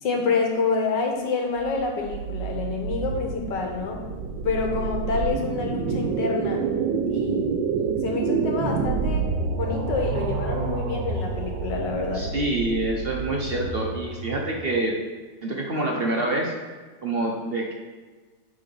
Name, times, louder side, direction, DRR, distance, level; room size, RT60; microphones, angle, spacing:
voice 1, 0.0-4.0 4.4-6.7 7.1-7.5 8.0-12.2, left 4 dB, 75° left, 1 dB, 1.8 m, -27 dB
sound 1, 1.6-14.8, right 5 dB, 80° right, 1.3 m, -28 dB
voice 2, 12.1-14.9 15.4-16.5 17.0-17.7, right 2 dB, 50° right, 0 dB, 0.7 m, -26 dB
8.8 x 3.8 x 5.2 m, 1.4 s
omnidirectional pair, 1.9 m